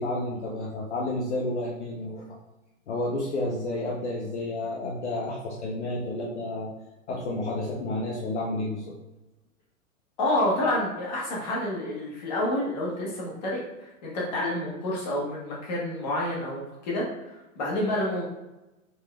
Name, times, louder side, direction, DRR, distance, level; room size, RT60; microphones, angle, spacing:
voice 1, 0.0-2.4 2.9-6.7 7.1-8.9, left 2 dB, 55° left, -2 dB, 0.8 m, -31 dB
voice 2, 10.2-13.6 14.0-18.2, left 1 dB, 30° left, -4 dB, 1.1 m, -28 dB
5.5 x 3.3 x 2.3 m, 1.0 s
hypercardioid pair, 175°, 42 cm